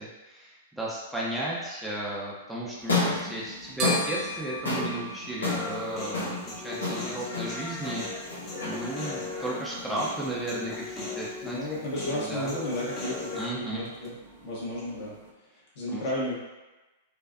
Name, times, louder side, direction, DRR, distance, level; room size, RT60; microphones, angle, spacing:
voice 1, 0.0-8.4 8.6-11.6 12.1-12.5 13.4-13.9 15.9-16.0, right 1 dB, 5° right, -6 dB, 0.7 m, -34 dB
sound 1, 2.7-11.0, left 3 dB, 90° left, 1.1 m, -33 dB
sound 2, 2.8-15.3, right 1 dB, 45° right, 0.6 m, -42 dB
Human voice, 5.4-13.5, left 3 dB, 30° left, 1.1 m, -38 dB
voice 2, 11.4-14.1 14.4-15.1 15.5-16.3, left 1 dB, 55° left, -6 dB, 1.5 m, -33 dB
4.5 x 2.4 x 2.6 m, 1.1 s
hypercardioid pair, 110°, 0 cm